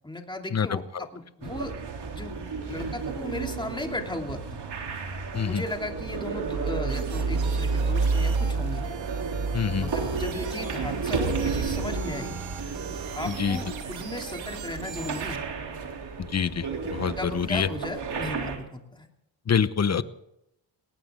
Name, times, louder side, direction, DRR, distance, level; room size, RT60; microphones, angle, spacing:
voice 1, 0.0-1.7 2.1-4.6 5.4-8.8 9.8-12.4 13.1-15.4 17.2-19.1, left 1 dB, 10° left, 3 dB, 3.0 m, -36 dB
sound 1, 1.4-18.6, right 4 dB, 55° right, 3.4 m, -31 dB
sound 2, 6.9-15.4, right 7 dB, 75° right, 2.7 m, -41 dB
voice 2, 9.5-9.9 13.3-13.6 16.3-17.7 19.5-20.0, left 6 dB, 35° left, 14 dB, 1.0 m, -26 dB
20.0 x 18.5 x 3.8 m, 0.82 s
cardioid pair, 85°, 47 cm